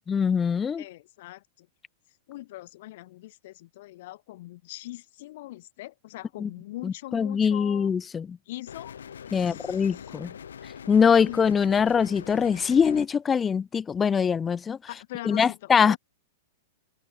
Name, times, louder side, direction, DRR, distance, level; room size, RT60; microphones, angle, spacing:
voice 1, 0.1-0.8 6.4-6.5 6.8-8.4 9.3-10.3 10.9-14.8 15.3-16.0, left 6 dB, 20° left, 0.3 m, -23 dB
voice 2, 0.8-1.7 2.3-7.9 8.4-9.0 9.2-10.1 11.1-11.6 14.9-16.0, left 17 dB, 60° left, 4.9 m, -42 dB
sound 1, 8.7-13.1, left 8 dB, 90° left, 2.7 m, -43 dB
open air
hypercardioid pair, 125°, 0 cm